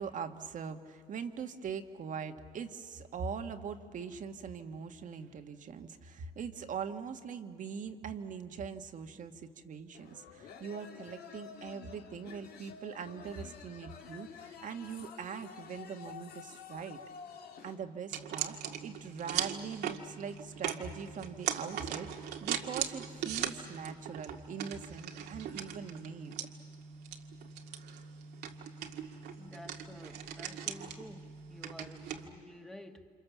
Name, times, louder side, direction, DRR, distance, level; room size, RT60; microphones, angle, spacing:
voice 1, 0.0-17.0 17.6-18.6 18.8-26.5, right 6 dB, 50° right, 6 dB, 1.6 m, -42 dB
sound 1, 9.9-17.8, left 7 dB, 65° left, 2.1 m, -50 dB
sound 2, 18.1-32.3, right 9 dB, 80° right, 2.0 m, -40 dB
voice 2, 29.4-33.1, left 1 dB, 5° left, 5 dB, 1.9 m, -51 dB
29.5 x 27.0 x 7.3 m, 2.2 s
cardioid pair, 110°, 17 cm